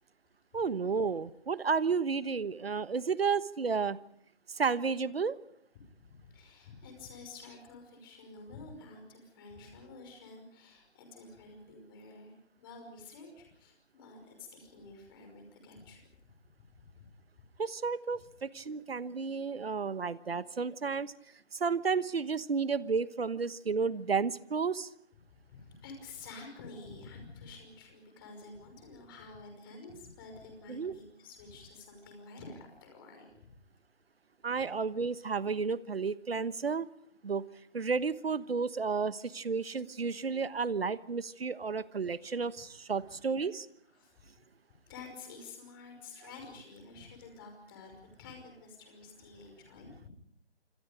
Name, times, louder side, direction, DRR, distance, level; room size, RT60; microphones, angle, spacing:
voice 1, 0.5-4.0 4.5-5.4 17.6-21.1 21.5-24.9 30.7-30.9 34.4-36.9 37.2-37.4 37.7-43.7, right 5 dB, 60° right, 16 dB, 1.2 m, -32 dB
voice 2, 5.7-16.0 16.6-17.1 25.2-33.6 42.9-43.2 43.9-44.1 44.9-50.1, left 3 dB, 20° left, 4 dB, 5.5 m, -50 dB
27.5 x 26.0 x 5.2 m, 0.71 s
figure-of-eight pair, 160°, 34 cm